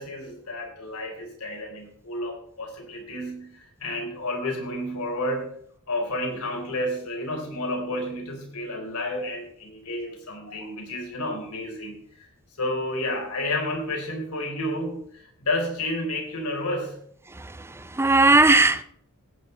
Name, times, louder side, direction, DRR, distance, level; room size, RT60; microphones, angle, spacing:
voice 1, 0.0-5.5 5.9-12.3 12.6-17.0, left 1 dB, 90° left, 3.8 m, -31 dB
voice 2, 17.3-18.8, right 2 dB, 10° right, 0.6 m, -19 dB
16.5 x 8.9 x 4.4 m
head